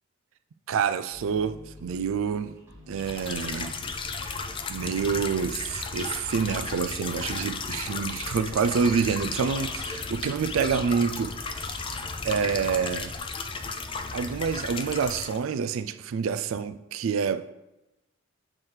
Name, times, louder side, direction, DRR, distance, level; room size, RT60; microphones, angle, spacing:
voice 1, 0.7-2.6 2.9-3.8 4.7-11.7 12.2-13.1 14.1-17.5, right 6 dB, 75° right, 0.3 m, -27 dB
sound 1, 1.1-13.0, left 2 dB, 15° right, 2.1 m, -49 dB
sound 2, 3.0-15.4, left 4 dB, 25° left, 0.4 m, -34 dB
7.2 x 4.5 x 3.2 m
head